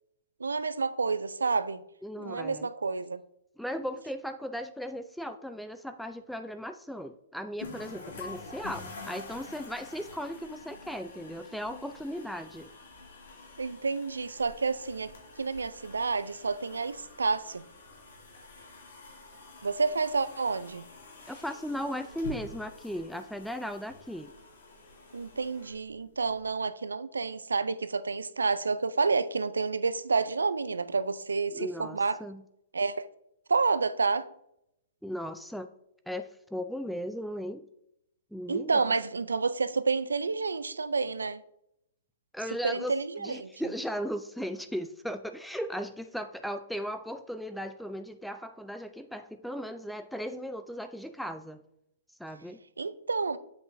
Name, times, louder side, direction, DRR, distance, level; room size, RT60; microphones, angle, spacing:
voice 1, 0.4-1.8 2.2-3.2 13.6-17.6 19.6-20.9 25.1-32.2 32.7-33.1 33.5-34.3 38.5-41.4 42.6-43.5 52.8-53.4, right 4 dB, 80° right, 0.4 m, -29 dB
voice 2, 2.0-2.7 3.6-12.7 21.3-24.3 31.5-32.4 35.0-35.7 36.1-37.7 38.3-38.9 42.3-51.6 52.2-52.6, equal, ahead, 0.3 m, -37 dB
sound 1, 7.6-26.5, left 2 dB, 65° left, 2.4 m, -48 dB
7.7 x 5.6 x 2.6 m
figure-of-eight pair, 115°, 0 cm